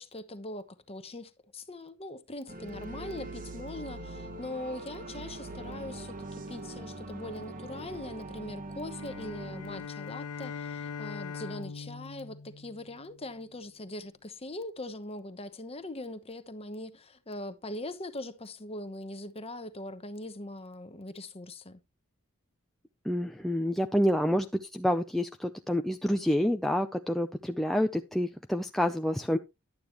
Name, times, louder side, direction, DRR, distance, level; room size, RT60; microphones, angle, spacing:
voice 1, 0.0-21.8, left 1 dB, 25° left, 1.0 m, -41 dB
sound 1, 2.5-9.9, right 2 dB, 40° right, 1.0 m, -42 dB
sound 2, 8.9-13.3, left 5 dB, 90° left, 0.5 m, -41 dB
voice 2, 23.0-29.4, equal, ahead, 0.5 m, -28 dB
11.5 x 8.7 x 3.0 m
head